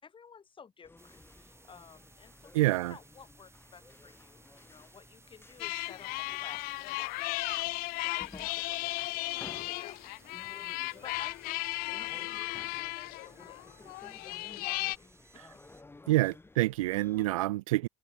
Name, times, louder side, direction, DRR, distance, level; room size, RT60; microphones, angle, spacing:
voice 1, 0.0-2.5 2.9-6.9 7.6-9.2 9.6-15.1, left 6 dB, 30° left, 6.3 m, -54 dB
sound 1, 0.8-17.3, left 2 dB, 15° left, 5.3 m, -55 dB
sound 2, 1.0-15.8, right 3 dB, 15° right, 5.8 m, -61 dB
voice 2, 2.5-2.9 16.1-17.9, right 18 dB, 75° right, 0.6 m, -27 dB
sound 3, 5.6-15.0, left 23 dB, 55° left, 1.1 m, -35 dB
hypercardioid pair, 75°, 18 cm